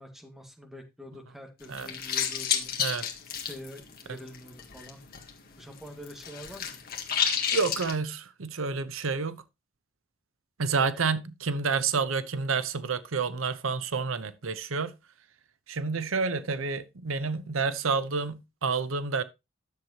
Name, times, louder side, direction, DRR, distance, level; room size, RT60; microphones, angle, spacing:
voice 1, 0.0-2.7 3.3-5.0 5.6-6.8, equal, ahead, 1.9 m, -46 dB
sound 1, 1.6-5.3 5.6-7.9, left 7 dB, 50° left, 2.0 m, -31 dB
voice 2, 7.5-9.4 10.6-14.9 15.7-19.2, right 4 dB, 85° right, 0.8 m, -29 dB
11.0 x 7.3 x 2.9 m
head